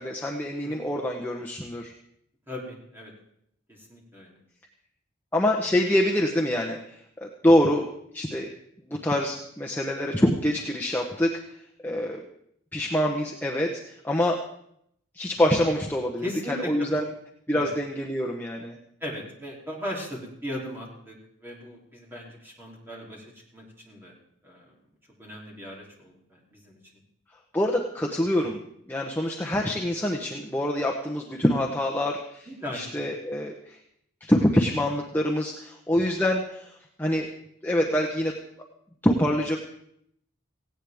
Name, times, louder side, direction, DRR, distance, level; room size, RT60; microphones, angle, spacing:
voice 1, 0.0-1.9 5.3-8.5 8.9-11.3 11.8-12.2 12.7-14.4 15.1-17.0 17.5-18.8 27.5-28.6 28.9-32.5 32.7-33.8 34.2-37.3 37.6-38.4 39.0-39.6, left 1 dB, 10° left, -1 dB, 0.9 m, -25 dB
voice 2, 0.6-1.0 2.5-3.1 3.7-4.4 16.2-17.0 17.5-17.7 19.0-21.2 21.4-23.2 23.5-24.1 24.4-24.7 25.2-26.8 32.5-33.0, equal, 10° right, -2 dB, 3.2 m, -38 dB
18.0 x 16.5 x 3.6 m, 0.73 s
head